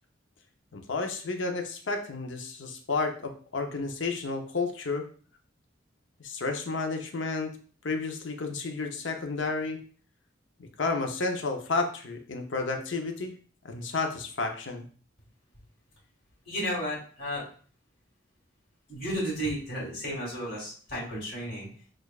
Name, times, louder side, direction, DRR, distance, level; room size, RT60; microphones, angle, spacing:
voice 1, 0.7-5.1 6.2-7.5 7.8-9.8 10.8-13.3 13.6-14.8, left 3 dB, 70° left, 4 dB, 0.6 m, -31 dB
voice 2, 16.5-17.4 18.9-21.7, equal, 45° left, -5 dB, 1.9 m, -33 dB
6.4 x 2.4 x 2.3 m, 0.43 s
head